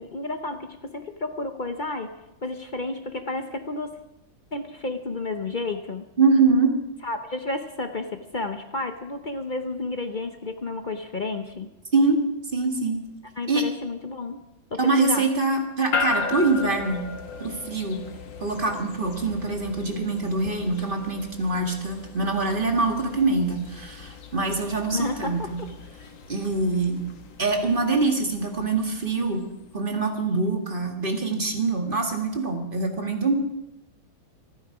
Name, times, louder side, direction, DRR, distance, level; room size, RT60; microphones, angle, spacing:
voice 1, 0.0-2.1 2.4-4.0 4.5-6.0 7.0-11.7 13.4-14.4 14.7-15.3 24.9-25.7, left 2 dB, 45° left, 6 dB, 0.6 m, -31 dB
voice 2, 6.2-6.8 11.9-12.3 12.5-13.0 13.5-13.7 14.8-17.0 17.4-18.0 18.4-25.6 26.3-27.0 27.4-29.4 29.7-33.3, right 3 dB, 30° right, 3 dB, 1.9 m, -24 dB
sound 1, 15.9-30.2, left 4 dB, 75° left, 2.0 m, -36 dB
27.0 x 9.9 x 4.9 m, 0.89 s
omnidirectional pair, 2.1 m